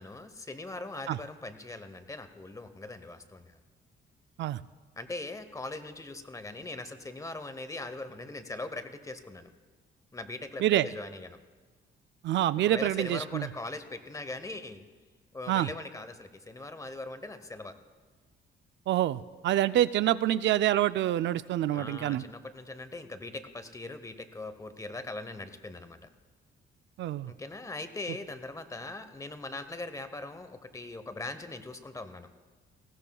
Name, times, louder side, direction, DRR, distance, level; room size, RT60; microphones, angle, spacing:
voice 1, 0.0-3.6 5.0-9.5 10.1-11.4 12.6-14.8 15.3-17.8 21.7-26.1 27.3-32.3, left 2 dB, 15° left, 11 dB, 0.9 m, -41 dB
voice 2, 12.2-13.5 15.5-15.7 18.9-22.2 27.0-27.3, right 13 dB, 65° right, 14 dB, 0.4 m, -26 dB
19.5 x 16.0 x 2.3 m, 1.4 s
cardioid pair, 90°, 20 cm